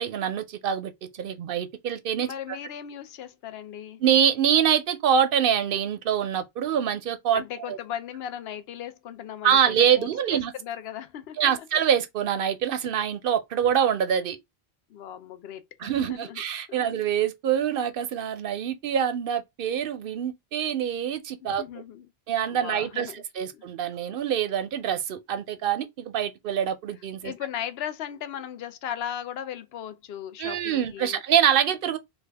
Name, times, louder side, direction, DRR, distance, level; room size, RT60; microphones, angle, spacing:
voice 1, 0.0-2.3 4.0-7.4 7.7-7.8 9.4-10.5 11.4-14.4 15.8-21.6 22.3-27.3 30.4-32.0, right 9 dB, 65° right, 0.7 m, -25 dB
voice 2, 2.2-4.0 7.3-11.7 14.9-16.4 16.7-17.0 21.4-22.1 22.5-23.2 23.5-23.6 27.2-31.2, left 10 dB, 80° left, 0.8 m, -37 dB
3.5 x 2.3 x 3.3 m
omnidirectional pair, 1.0 m